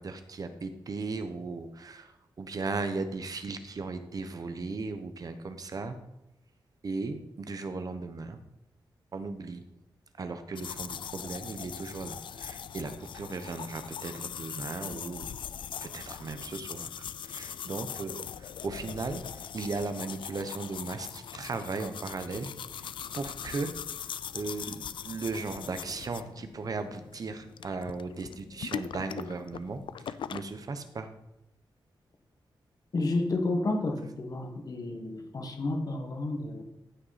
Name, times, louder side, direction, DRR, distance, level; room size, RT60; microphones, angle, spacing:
voice 1, 0.0-2.1 2.4-6.0 6.8-8.4 9.1-9.6 10.2-15.4 15.8-23.7 24.3-31.1, right 3 dB, 45° right, 9 dB, 1.0 m, -37 dB
sound 1, 10.6-30.4, left 8 dB, 75° left, 0.4 m, -41 dB
voice 2, 32.9-36.6, left 2 dB, 50° left, 3 dB, 1.7 m, -31 dB
14.5 x 6.1 x 4.2 m, 0.88 s
wide cardioid pair, 120°, 8 cm